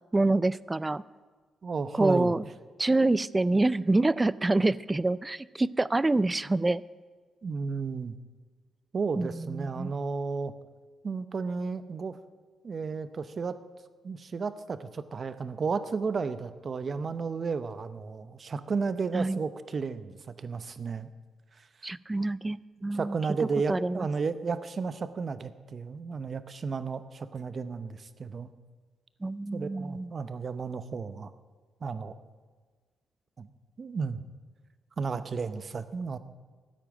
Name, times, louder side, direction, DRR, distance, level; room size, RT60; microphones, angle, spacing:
voice 1, 0.1-1.0 1.9-2.4 2.8-6.8 9.2-9.9 19.1-19.4 21.8-24.1 29.2-30.1, right 2 dB, 20° right, 19 dB, 0.4 m, -26 dB
voice 2, 1.6-2.3 7.4-8.2 8.9-10.5 11.0-12.2 12.6-13.6 14.0-21.1 22.9-28.5 29.5-31.3 31.8-32.2 33.4-33.5 33.8-34.2 35.0-36.2, right 5 dB, 45° right, 12 dB, 0.8 m, -33 dB
13.5 x 8.9 x 9.0 m, 1.4 s
cardioid pair, 100°, 0 cm